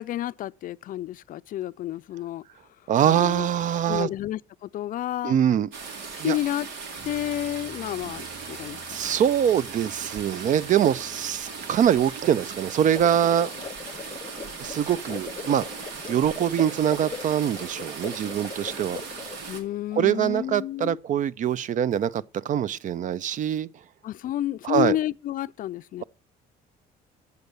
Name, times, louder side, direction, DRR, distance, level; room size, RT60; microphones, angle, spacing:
voice 1, 0.0-2.4 3.1-3.5 3.9-5.4 6.2-6.7 7.0-9.2 19.5-21.0 24.0-26.0, left 13 dB, 55° left, 0.4 m, -30 dB
voice 2, 2.9-4.1 5.2-5.7 6.2-6.4 8.9-13.5 14.6-15.6 16.1-19.0 19.9-23.7 24.6-25.0, right 9 dB, 50° right, 0.5 m, -23 dB
sound 1, 5.7-19.6, right 5 dB, 90° right, 2.3 m, -38 dB
Bass guitar, 7.0-13.2, right 2 dB, 65° right, 4.4 m, -53 dB
sound 2, 12.8-19.6, left 5 dB, 25° left, 0.8 m, -40 dB
8.1 x 6.7 x 8.0 m
cardioid pair, 110°, 17 cm